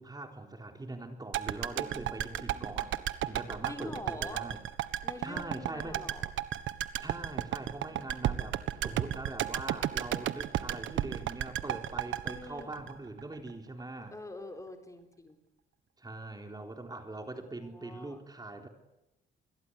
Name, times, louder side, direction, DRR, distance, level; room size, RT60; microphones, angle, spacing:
voice 1, 0.0-3.0 3.2-4.6 5.2-6.0 7.0-14.1 16.0-18.7, right 2 dB, 20° right, 4 dB, 3.9 m, -42 dB
sound 1, 1.3-13.5 13.8-13.9, right 12 dB, 75° right, 1.5 m, -34 dB
voice 2, 1.8-2.9 3.7-4.5 5.0-6.3 7.8-8.5 12.2-12.7 14.1-15.4 17.6-18.2, left 2 dB, 15° left, 5 dB, 4.1 m, -46 dB
27.5 x 22.0 x 8.3 m, 0.92 s
cardioid pair, 90°, 20 cm